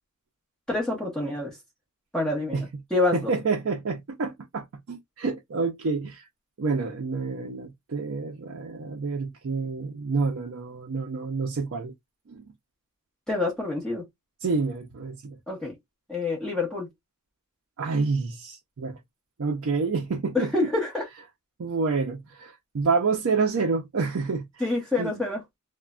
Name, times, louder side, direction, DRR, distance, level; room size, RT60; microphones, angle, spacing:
voice 1, 0.7-1.6 2.1-3.2 13.3-14.0 15.5-15.7 16.1-16.9 20.3-21.1 24.6-25.4, left 2 dB, 5° left, 1.0 m, -27 dB
voice 2, 3.1-6.3 6.6-11.9 12.3-12.4 14.4-15.4 17.8-19.0 19.4-20.7 21.6-24.4 25.0-25.1, right 4 dB, 60° right, 0.5 m, -28 dB
3.1 x 2.1 x 2.3 m
head